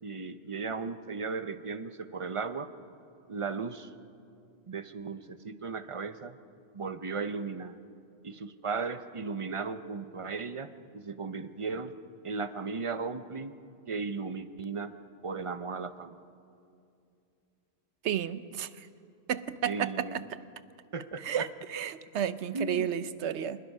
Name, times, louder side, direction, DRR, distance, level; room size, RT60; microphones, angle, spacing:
voice 1, 0.0-2.7 3.3-3.9 4.7-6.4 6.7-7.8 8.2-11.9 12.2-13.5 13.9-14.9 15.2-16.1 19.6-20.2 20.9-21.5 22.5-22.9, right 4 dB, 35° right, 11 dB, 0.7 m, -36 dB
voice 2, 18.0-18.9 19.3-20.4 21.2-23.6, right 9 dB, 85° right, 14 dB, 1.0 m, -32 dB
26.5 x 20.0 x 5.4 m, 2.5 s
omnidirectional pair, 1.1 m